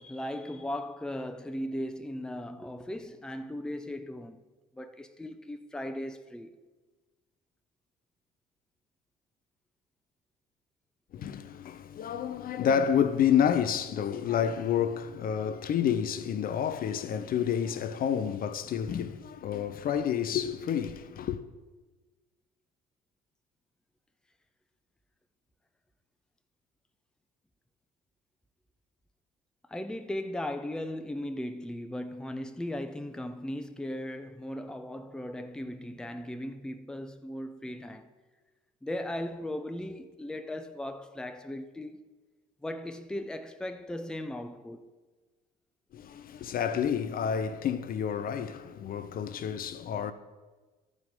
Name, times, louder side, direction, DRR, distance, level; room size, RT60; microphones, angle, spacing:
voice 1, 0.0-4.4 4.7-6.5 29.7-38.1 38.8-42.1 42.6-44.9, left 1 dB, 5° left, 0.6 m, -37 dB
voice 2, 11.1-21.4 45.9-50.1, left 8 dB, 45° left, 0.6 m, -29 dB
13.0 x 4.9 x 5.2 m
hypercardioid pair, 55°, 20 cm